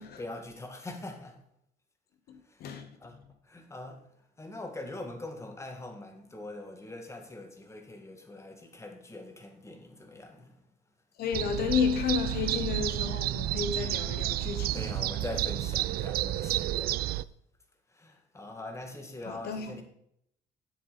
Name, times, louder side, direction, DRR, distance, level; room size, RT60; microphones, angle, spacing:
voice 1, 0.0-1.4 2.5-3.2 3.4-4.0 4.4-10.6 12.6-12.7 14.7-17.0 17.9-19.8, left 2 dB, 15° left, 1.9 m, -43 dB
voice 2, 2.3-2.9 11.2-14.8 19.2-19.8, left 7 dB, 70° left, 1.1 m, -31 dB
sound 1, 11.3-17.2, right 15 dB, 65° right, 0.4 m, -31 dB
10.0 x 8.0 x 4.1 m
cardioid pair, 110°, 17 cm